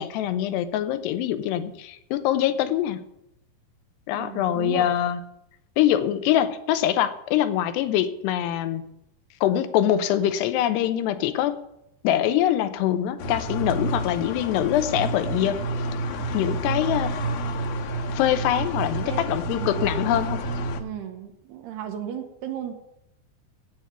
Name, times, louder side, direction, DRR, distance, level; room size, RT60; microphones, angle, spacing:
voice 1, 0.0-3.1 4.1-5.2 5.8-8.8 9.4-11.6 12.0-15.6 16.3-17.1 18.1-20.4, left 11 dB, 90° left, 11 dB, 3.0 m, -24 dB
voice 2, 4.1-4.9 19.0-19.2 19.5-19.9 20.7-22.7, right 9 dB, 80° right, 3 dB, 3.1 m, -35 dB
sound 1, 13.2-20.8, right 1 dB, 65° left, 2.3 m, -29 dB
8.9 x 8.7 x 9.4 m, 0.81 s
omnidirectional pair, 4.7 m